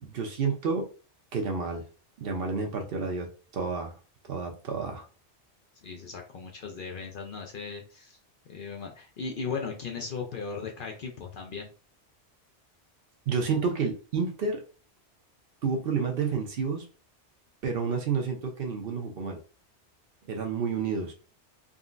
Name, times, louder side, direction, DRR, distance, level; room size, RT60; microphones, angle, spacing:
voice 1, 0.0-0.9 1.3-1.9 2.2-3.9 4.3-5.1 13.3-14.6 15.6-16.8 17.6-19.4 20.3-21.1, right 5 dB, 60° right, 3 dB, 0.8 m, -30 dB
voice 2, 5.8-8.2 8.5-11.7, left 5 dB, 55° left, 2 dB, 0.6 m, -37 dB
3.7 x 2.1 x 2.4 m, 0.36 s
omnidirectional pair, 1.2 m